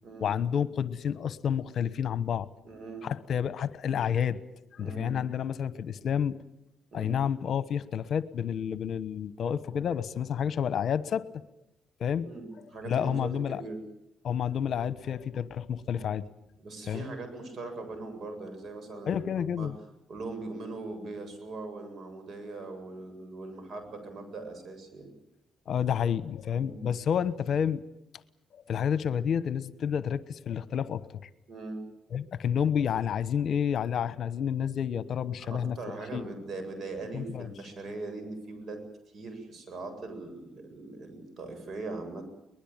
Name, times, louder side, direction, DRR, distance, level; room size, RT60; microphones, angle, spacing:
voice 1, 0.2-2.5 3.0-4.4 4.7-6.4 6.9-11.3 12.0-12.3 12.8-13.6 14.2-16.2 16.9-17.0 19.1-19.8 25.7-27.8 28.5-31.3 32.1-35.8 36.1-36.3 37.1-37.5, left 8 dB, 60° left, 15 dB, 1.1 m, -30 dB
voice 2, 2.6-3.1 4.8-5.2 6.9-7.2 12.2-13.8 15.8-16.0 16.6-19.2 19.6-19.7 20.1-25.1 26.6-26.8 31.5-31.8 35.4-38.8 39.1-42.3, right 3 dB, 55° right, 7 dB, 7.8 m, -40 dB
23.0 x 20.5 x 9.0 m, 0.85 s
cardioid pair, 90°, 0 cm